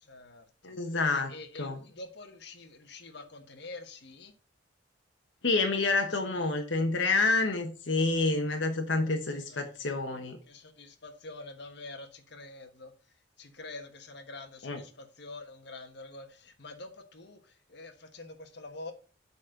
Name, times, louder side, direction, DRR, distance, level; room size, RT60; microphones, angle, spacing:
voice 1, 0.0-0.7 1.1-4.3 9.0-9.8 10.4-12.9 13.4-18.9, left 2 dB, 65° left, 1.4 m, -46 dB
voice 2, 0.6-1.3 1.6-1.8 5.4-10.4 14.6-14.8, left 3 dB, 80° left, 1.2 m, -28 dB
8.3 x 4.3 x 6.4 m
head